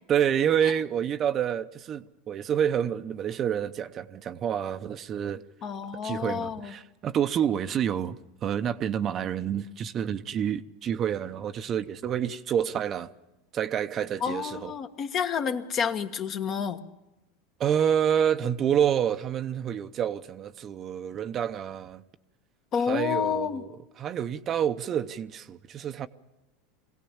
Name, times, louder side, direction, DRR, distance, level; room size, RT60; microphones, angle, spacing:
voice 1, 0.1-5.4 6.0-13.1 13.5-14.7 17.6-22.0 22.9-23.7 24.0-26.1, right 9 dB, 35° right, 0.8 m, -28 dB
voice 2, 5.6-6.7 14.2-16.8 22.7-23.6, left 7 dB, 40° left, 1.4 m, -29 dB
23.0 x 16.5 x 7.2 m
supercardioid pair, 115°, 0 cm